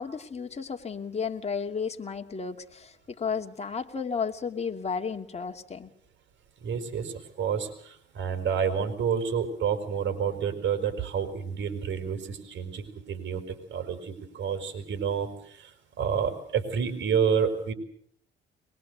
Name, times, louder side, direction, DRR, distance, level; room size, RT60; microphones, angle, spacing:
voice 1, 0.0-5.9, left 6 dB, 30° left, 4 dB, 2.6 m, -33 dB
voice 2, 6.6-17.7, right 7 dB, 65° right, 8 dB, 5.1 m, -29 dB
23.5 x 21.5 x 8.1 m, 0.62 s
cardioid pair, 90°, 20 cm